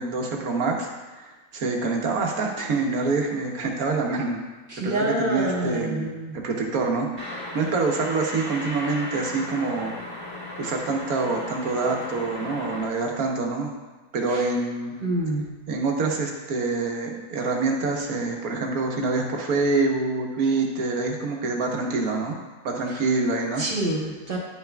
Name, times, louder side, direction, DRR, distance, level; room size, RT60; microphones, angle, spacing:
voice 1, 0.0-4.4 4.8-9.9 10.6-13.7 14.1-15.0 15.7-22.4 22.6-23.6, right 3 dB, 70° right, 1 dB, 1.4 m, -26 dB
voice 2, 4.7-6.4 15.0-15.5 23.6-24.4, right 1 dB, 35° right, -3 dB, 1.2 m, -27 dB
sound 1, 7.2-12.8, left 1 dB, 15° right, 2.0 m, -36 dB
10.5 x 5.7 x 2.3 m, 1.3 s
omnidirectional pair, 1.6 m